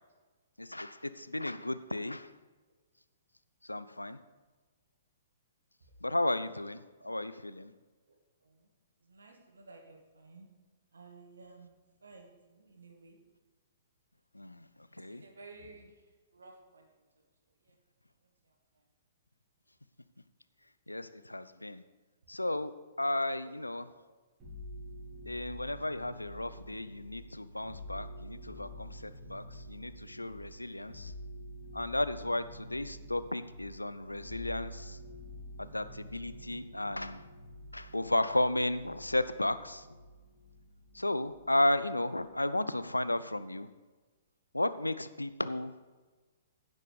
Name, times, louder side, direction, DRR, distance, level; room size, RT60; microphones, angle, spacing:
voice 1, 0.6-2.3 3.6-4.2 6.0-7.7 14.3-15.2 20.9-21.8 22.3-22.7 23.0-23.9 25.3-31.2 31.7-35.0 35.6-37.3 37.7-40.0 40.9-43.7 44.5-45.7, left 1 dB, 85° left, 13 dB, 0.5 m, -34 dB
voice 2, 8.1-8.7 9.0-10.5 10.9-11.7 12.0-13.2 15.1-17.3 17.6-17.8 18.2-18.8 22.3-22.4 23.4-23.5 23.9-24.0, right 3 dB, 70° right, 3 dB, 1.8 m, -55 dB
sound 1, 24.4-41.8 42.2-42.9, equal, 20° right, 3.8 m, -48 dB
10.5 x 7.6 x 5.0 m, 1.3 s
figure-of-eight pair, 115°, 0 cm